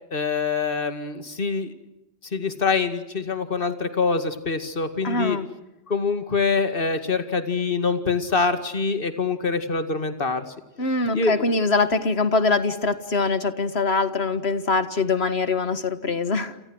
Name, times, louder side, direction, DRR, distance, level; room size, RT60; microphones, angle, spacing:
voice 1, 0.1-1.7 2.3-5.4 5.9-10.4 11.1-11.4, left 4 dB, 60° left, 8 dB, 2.3 m, -25 dB
voice 2, 5.0-5.5 10.8-16.6, left 3 dB, 85° left, 11 dB, 2.0 m, -23 dB
29.0 x 29.0 x 6.3 m, 0.91 s
omnidirectional pair, 1.0 m